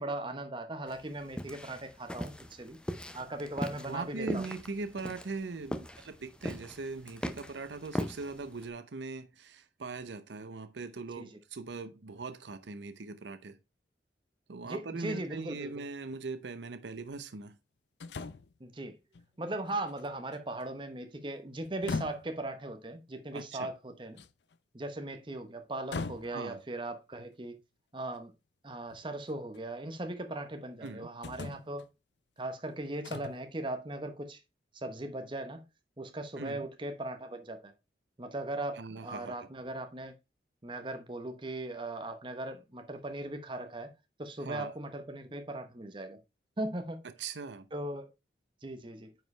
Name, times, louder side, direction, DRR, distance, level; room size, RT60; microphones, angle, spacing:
voice 1, 0.0-2.8 3.1-4.5 11.2-11.4 14.6-15.8 18.6-19.0 19.4-24.2 24.7-27.6 27.9-28.3 28.6-31.9 32.4-34.4 34.7-35.6 36.0-37.7 38.2-40.1 40.6-43.9 44.2-46.2 46.6-47.0 47.7-48.1 48.6-49.1, right 1 dB, 30° right, 1.0 m, -38 dB
sound 1, 0.9-8.7, equal, 5° left, 0.5 m, -40 dB
voice 2, 3.9-13.6 14.5-17.6 23.3-23.7 26.3-26.6 30.8-31.1 36.4-36.7 38.8-39.3 44.4-44.7 47.2-47.7, right 3 dB, 80° right, 0.7 m, -40 dB
sound 2, 15.1-15.2 18.0-18.6 19.1-19.3 19.7-20.6 21.6-22.4 24.2-24.6 25.9-26.6 28.2-28.3 28.9-29.6 30.8-30.9 31.2-31.9 33.0-33.4, left 4 dB, 75° left, 0.5 m, -39 dB
9.1 x 4.9 x 3.2 m
head